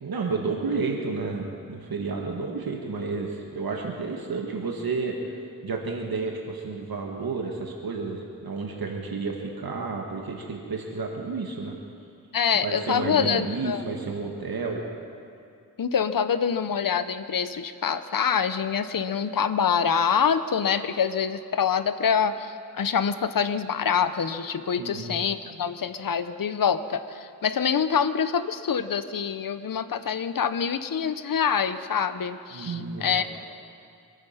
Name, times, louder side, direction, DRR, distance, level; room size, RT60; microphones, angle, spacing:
voice 1, 0.0-5.2 5.6-11.8 12.6-14.9 24.8-25.1 32.5-33.2, right 4 dB, 80° right, 1 dB, 1.7 m, -31 dB
voice 2, 12.3-13.8 15.8-33.2, left 7 dB, 65° left, 12 dB, 0.9 m, -25 dB
25.5 x 9.6 x 5.8 m, 2.4 s
cardioid pair, 50°, 36 cm